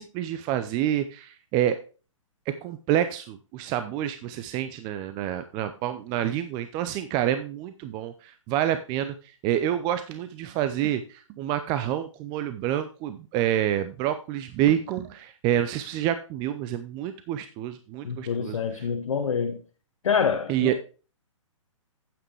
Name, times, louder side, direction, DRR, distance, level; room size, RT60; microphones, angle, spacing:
voice 1, 0.0-1.8 2.6-9.1 9.4-18.6 20.5-20.7, right 11 dB, 25° right, 0.6 m, -28 dB
voice 2, 18.0-19.6 20.0-20.8, left 6 dB, 70° left, 1.1 m, -26 dB
8.8 x 8.7 x 3.3 m
hypercardioid pair, 125°, 17 cm